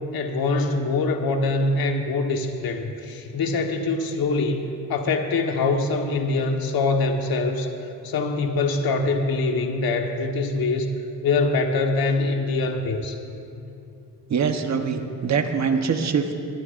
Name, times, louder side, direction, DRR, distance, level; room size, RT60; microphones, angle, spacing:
voice 1, 0.0-10.9 11.2-13.2, left 3 dB, 65° left, 3 dB, 1.4 m, -24 dB
voice 2, 14.3-16.3, right 6 dB, 45° right, 5 dB, 1.1 m, -23 dB
21.0 x 20.5 x 2.6 m, 2.7 s
wide cardioid pair, 155°, 39 cm